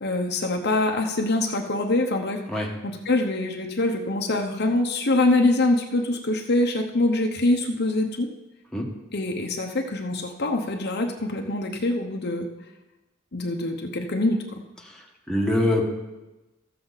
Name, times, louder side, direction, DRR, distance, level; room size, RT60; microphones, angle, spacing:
voice 1, 0.0-8.3 9.1-12.5 13.3-14.4, left 2 dB, 50° left, 3 dB, 0.8 m, -24 dB
voice 2, 15.3-15.8, left 1 dB, 5° left, -1 dB, 1.2 m, -23 dB
14.0 x 7.2 x 4.0 m, 1.1 s
head